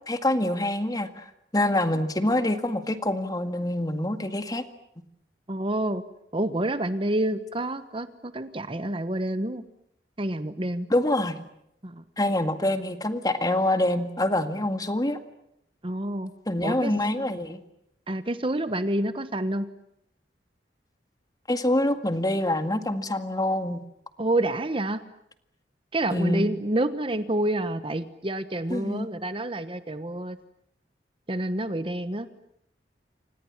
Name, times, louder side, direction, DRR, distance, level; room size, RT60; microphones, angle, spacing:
voice 1, 0.1-1.3 1.5-4.6 10.9-11.4 12.2-15.2 16.5-17.6 21.5-23.8 26.1-26.5 28.7-29.1, left 1 dB, 20° left, 8 dB, 1.9 m, -25 dB
voice 2, 5.5-6.0 6.3-9.6 10.2-10.9 11.8-12.0 15.8-16.3 16.6-16.9 18.1-19.7 24.2-25.0 25.9-30.4 31.3-32.3, right 1 dB, 30° right, 11 dB, 1.2 m, -28 dB
29.5 x 26.0 x 7.3 m, 0.77 s
head